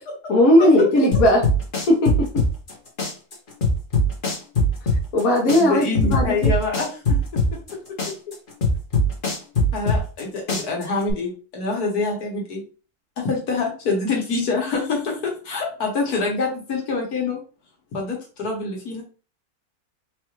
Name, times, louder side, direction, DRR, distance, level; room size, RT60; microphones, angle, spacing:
voice 1, 0.3-1.4 1.9-2.4 5.1-6.5, left 1 dB, 70° left, -1 dB, 1.4 m, -17 dB
sound 1, 1.1-2.7 3.0-5.2 5.5-7.7 8.0-10.2 10.5-11.1, left 1 dB, 40° left, 1.1 m, -20 dB
voice 2, 5.5-7.4 7.7-8.1 9.7-12.6 13.2-17.4 17.9-19.0, left 3 dB, 85° left, 0 dB, 1.7 m, -26 dB
4.6 x 2.4 x 3.0 m, 0.36 s
omnidirectional pair, 1.6 m